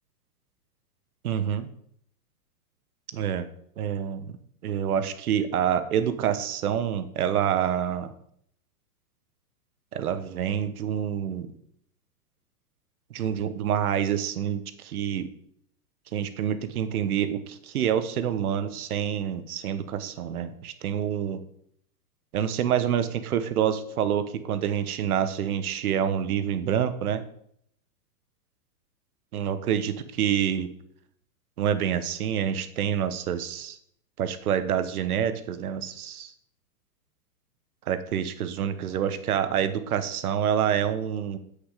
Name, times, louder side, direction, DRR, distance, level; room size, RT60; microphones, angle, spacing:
voice 1, 1.2-1.7 3.1-3.5 3.8-4.2 4.6-8.1 9.9-11.5 13.1-15.3 16.1-21.4 22.3-27.2 29.3-30.7 31.6-33.8 34.2-36.3 37.9-41.4, right 9 dB, 65° right, 11 dB, 1.2 m, -27 dB
8.0 x 6.6 x 4.9 m, 0.67 s
hypercardioid pair, 145°, 47 cm